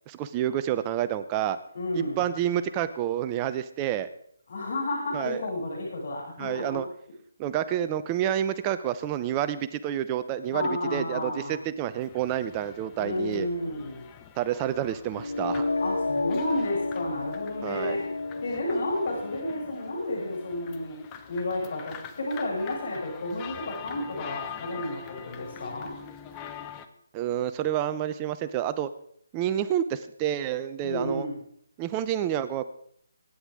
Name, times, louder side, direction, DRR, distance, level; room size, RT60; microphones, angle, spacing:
voice 1, 0.1-1.6 1.9-4.1 5.1-5.5 6.4-6.9 7.4-13.5 14.4-15.7 17.6-18.0 27.1-28.9 29.3-31.3 31.8-32.7, right 11 dB, 20° right, 12 dB, 0.7 m, -29 dB
voice 2, 1.7-2.2 4.5-6.8 10.5-11.6 13.0-14.1 15.8-18.1 18.4-21.0 21.3-25.9 30.8-31.4, left 1 dB, 60° left, -7 dB, 7.9 m, -31 dB
sound 1, 11.9-26.9, left 8 dB, 20° left, 1.0 m, -45 dB
sound 2, 15.1-21.1, left 3 dB, 90° left, 0.7 m, -32 dB
24.5 x 10.0 x 3.7 m, 0.66 s
hypercardioid pair, 160°, 0 cm